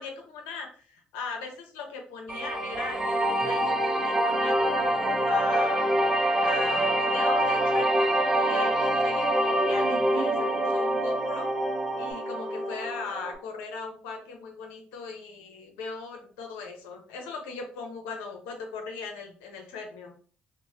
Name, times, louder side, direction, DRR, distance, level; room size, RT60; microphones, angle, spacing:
voice 1, 0.0-5.9 6.4-11.5 12.0-20.1, left 4 dB, 90° left, 2 dB, 0.6 m, -39 dB
sound 1, 2.3-13.4, right 1 dB, 20° right, 0.6 m, -26 dB
sound 2, 3.4-12.1, right 2 dB, 85° right, 0.8 m, -37 dB
3.0 x 2.1 x 2.6 m, 0.44 s
supercardioid pair, 65°, 3 cm